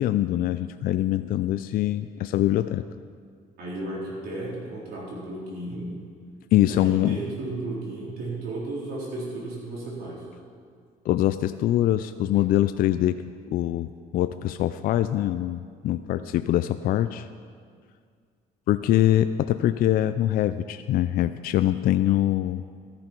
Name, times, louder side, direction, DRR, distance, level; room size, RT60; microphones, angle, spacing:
voice 1, 0.0-2.8 6.5-7.2 11.1-13.2 13.5-13.9 14.1-17.3 18.7-22.6, left 13 dB, 60° left, 11 dB, 0.4 m, -23 dB
voice 2, 3.6-5.9 6.6-10.2, right 2 dB, 70° right, -4 dB, 3.9 m, -34 dB
13.5 x 10.5 x 4.5 m, 2.1 s
cardioid pair, 110°, 17 cm